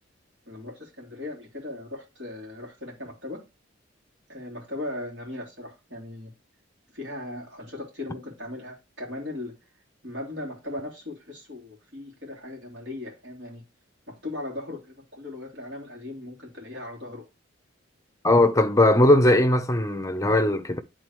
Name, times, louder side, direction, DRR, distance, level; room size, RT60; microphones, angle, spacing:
voice 1, 0.5-3.4 4.3-6.3 6.9-9.5 10.0-13.6 14.1-17.2, left 2 dB, 60° right, 3.2 m, -38 dB
voice 2, 18.2-20.8, left 1 dB, 15° left, 0.7 m, -19 dB
10.5 x 3.9 x 3.1 m
head